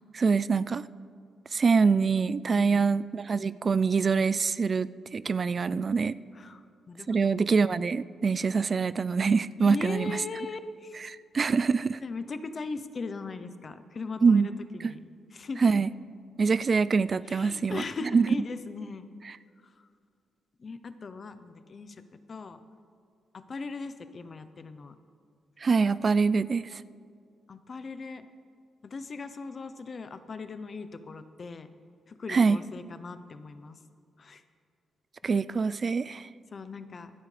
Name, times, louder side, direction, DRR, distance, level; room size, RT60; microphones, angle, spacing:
voice 1, 0.1-0.8 1.5-6.2 7.1-10.1 11.3-12.0 14.2-14.5 14.8-14.9 15.6-15.9 16.4-17.8 18.1-18.3 25.6-26.8 32.3-32.6 35.2-36.3, right 5 dB, 40° right, 16 dB, 0.3 m, -24 dB
voice 2, 2.5-2.9 6.3-7.3 9.6-11.1 12.0-15.8 17.2-19.1 19.6-19.9 20.6-22.6 23.3-24.9 27.5-28.3 28.8-31.7 32.1-33.8 34.2-34.4 36.5-37.1, left 4 dB, 40° left, 11 dB, 0.7 m, -39 dB
26.0 x 8.8 x 3.3 m, 2.3 s
cardioid pair, 95°, 0 cm